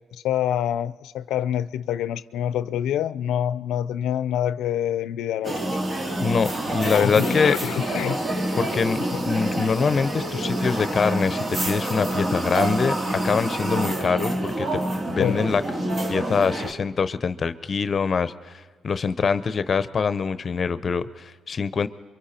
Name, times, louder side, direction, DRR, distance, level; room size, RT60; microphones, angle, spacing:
voice 1, 0.1-5.8 6.8-8.2 9.0-9.2 15.2-15.4, left 10 dB, 85° left, 0.5 m, -26 dB
sound 1, 5.4-16.7, right 1 dB, 35° right, 2.2 m, -27 dB
voice 2, 6.2-7.6 8.6-9.0 9.2-12.9 13.2-14.8 15.1-15.6 16.1-21.9, left 5 dB, 40° left, 0.8 m, -24 dB
28.5 x 23.5 x 4.4 m
cardioid pair, 90°, 0 cm